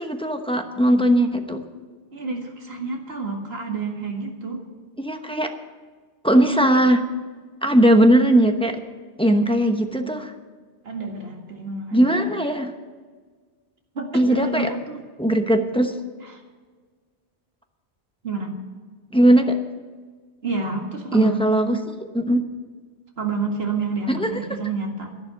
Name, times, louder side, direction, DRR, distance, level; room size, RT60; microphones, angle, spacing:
voice 1, 0.0-1.6 5.0-5.5 6.2-7.1 7.6-8.8 9.2-10.3 11.9-12.7 14.1-14.7 15.2-15.9 19.1-19.6 21.1-21.8 22.1-22.4 24.1-24.3, right 1 dB, 5° left, 5 dB, 0.9 m, -19 dB
voice 2, 2.1-4.6 10.8-12.2 14.0-15.0 16.3-16.4 18.2-18.6 20.4-21.5 23.2-25.2, right 4 dB, 60° right, 2 dB, 2.2 m, -29 dB
11.5 x 11.5 x 7.0 m, 1.5 s
omnidirectional pair, 1.2 m